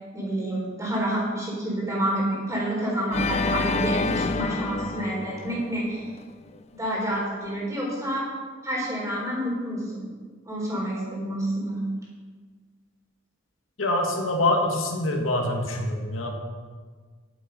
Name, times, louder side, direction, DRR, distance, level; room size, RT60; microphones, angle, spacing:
voice 1, 0.1-6.0 6.8-8.2 8.6-10.0 10.5-11.8, right 1 dB, 15° right, -4 dB, 4.0 m, -28 dB
Organ, 3.1-6.2, left 3 dB, 35° left, 0.4 m, -28 dB
voice 2, 13.8-16.3, left 1 dB, 85° left, 1 dB, 1.9 m, -25 dB
11.0 x 9.0 x 5.4 m, 1.5 s
head